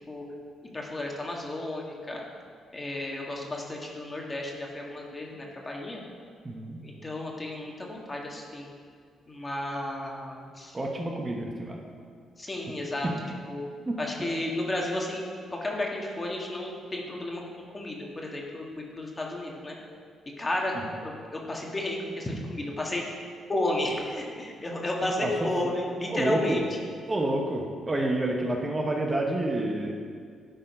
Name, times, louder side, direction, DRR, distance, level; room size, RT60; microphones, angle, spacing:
voice 1, 0.7-2.2 2.7-6.0 6.8-8.7 9.3-10.8 12.4-13.1 13.5-13.7 14.0-19.7 20.4-23.2 23.5-26.8, left 1 dB, 25° left, -1 dB, 1.6 m, -33 dB
voice 2, 6.4-6.8 10.7-11.8 13.9-14.0 20.8-20.9 25.2-25.7 26.1-26.6 27.1-29.9, right 1 dB, 25° right, 1 dB, 0.9 m, -29 dB
11.5 x 4.4 x 5.4 m, 2.1 s
cardioid pair, 90°, 0 cm